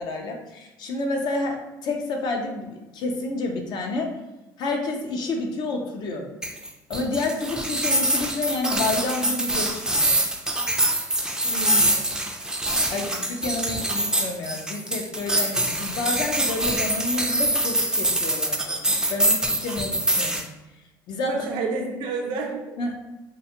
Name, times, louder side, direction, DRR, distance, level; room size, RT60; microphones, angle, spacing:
voice 1, 0.0-4.2 4.6-6.3 6.9-10.1 12.9-18.7 19.1-20.4 21.1-21.4 22.8-23.0, left 3 dB, 60° left, 2 dB, 0.5 m, -29 dB
sound 1, 6.4-20.4, right 1 dB, 10° right, 0.4 m, -24 dB
voice 2, 11.4-12.3 21.2-22.8, right 3 dB, 75° right, 2 dB, 0.5 m, -30 dB
2.4 x 2.2 x 2.8 m, 1.0 s
supercardioid pair, 90°, 8 cm